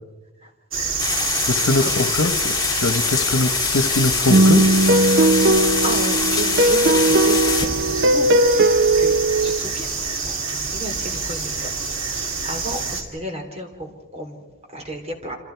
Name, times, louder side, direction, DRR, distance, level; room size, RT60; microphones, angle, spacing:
sound 1, 0.7-13.0, right 4 dB, 75° right, 2.7 m, -27 dB
sound 2, 1.0-7.7, left 6 dB, 20° left, 2.0 m, -24 dB
voice 1, 1.5-4.7, left 2 dB, 85° left, 12 dB, 1.3 m, -22 dB
sound 3, 4.3-9.6, right 2 dB, 55° right, 0.6 m, -17 dB
voice 2, 5.8-9.2 9.4-9.9 10.2-10.4 10.7-11.7 12.1-14.4 14.7-15.4, right 1 dB, 30° right, 4 dB, 3.4 m, -32 dB
28.5 x 26.5 x 4.7 m, 1.2 s
head